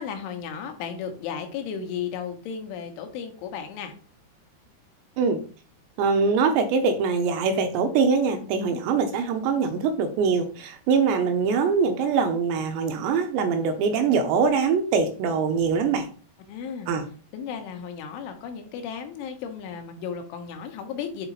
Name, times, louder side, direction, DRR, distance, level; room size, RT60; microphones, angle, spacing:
voice 1, 0.0-3.9 8.7-8.9 16.5-16.9 17.3-21.3, left 7 dB, 85° left, 5 dB, 3.5 m, -34 dB
voice 2, 6.0-16.1 16.9-17.0, right 5 dB, 80° right, 6 dB, 2.7 m, -23 dB
8.1 x 4.0 x 4.0 m, 0.40 s
omnidirectional pair, 5.4 m